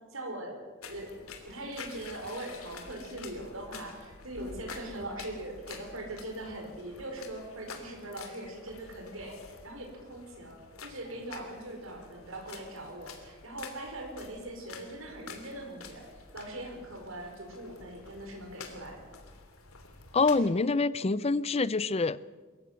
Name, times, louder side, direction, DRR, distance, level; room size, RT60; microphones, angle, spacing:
voice 1, 0.1-16.0 16.3-19.1, right 1 dB, 75° right, 2 dB, 5.1 m, -41 dB
sound 1, 0.8-20.4, left 4 dB, 85° left, 3.0 m, -49 dB
voice 2, 20.1-22.2, left 3 dB, 30° left, 18 dB, 0.5 m, -26 dB
23.5 x 14.5 x 8.3 m, 1.4 s
head